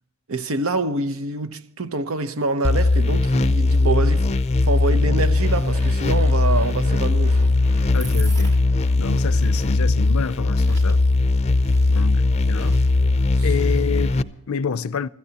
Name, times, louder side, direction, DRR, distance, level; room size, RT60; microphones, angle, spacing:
voice 1, 0.3-4.4 4.6-7.4 13.4-13.5, right 3 dB, 80° right, 0.8 m, -26 dB
sound 1, 2.6-14.2, left 2 dB, 30° left, 0.5 m, -19 dB
sound 2, 5.2-10.4, equal, 30° right, 2.0 m, -45 dB
sound 3, 7.2-14.3, right 4 dB, 55° right, 2.9 m, -45 dB
voice 2, 7.9-8.6 9.0-11.0 11.9-12.8 13.4-15.1, left 6 dB, 85° left, 0.5 m, -28 dB
24.5 x 14.0 x 2.9 m
head